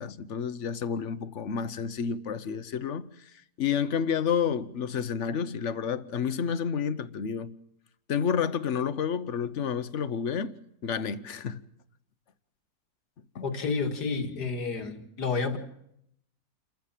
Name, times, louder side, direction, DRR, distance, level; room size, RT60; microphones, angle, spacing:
voice 1, 0.0-3.1 3.6-7.5 8.1-10.6 10.8-11.6 13.3-13.4, left 7 dB, 50° left, 1.2 m, -30 dB
voice 2, 13.4-15.6, left 4 dB, 80° left, 2.7 m, -30 dB
28.5 x 15.0 x 7.5 m
omnidirectional pair, 1.7 m